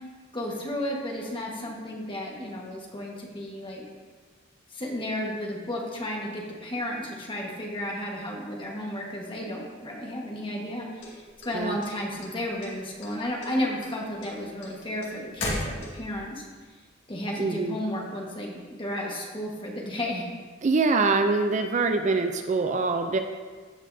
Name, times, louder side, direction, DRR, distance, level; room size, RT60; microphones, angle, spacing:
voice 1, 0.3-3.8 4.7-16.4 17.1-20.3, left 1 dB, 25° left, -2 dB, 1.4 m, -33 dB
sound 1, 11.0-12.3 12.6-13.1 13.4-16.2, left 1 dB, 65° left, 2.2 m, -34 dB
voice 2, 17.4-17.8 20.6-23.2, right 3 dB, 40° right, 6 dB, 0.4 m, -24 dB
15.5 x 5.5 x 2.7 m, 1.5 s
head